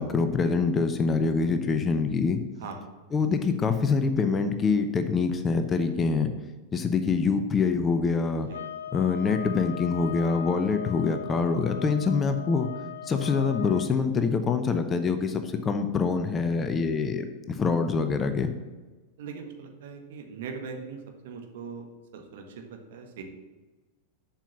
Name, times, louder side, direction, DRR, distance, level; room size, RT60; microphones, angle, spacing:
voice 1, 0.0-2.4 3.1-6.3 6.7-8.5 8.9-12.7 13.1-18.5, left 5 dB, 20° left, 8 dB, 0.7 m, -25 dB
sound 1, 8.5-13.9, left 9 dB, 70° left, 0.5 m, -39 dB
voice 2, 19.2-21.0 21.2-21.8 22.1-22.4 22.7-23.2, right 5 dB, 55° right, 3 dB, 1.4 m, -40 dB
7.4 x 5.2 x 7.0 m, 1.2 s
figure-of-eight pair, 90°, 0 cm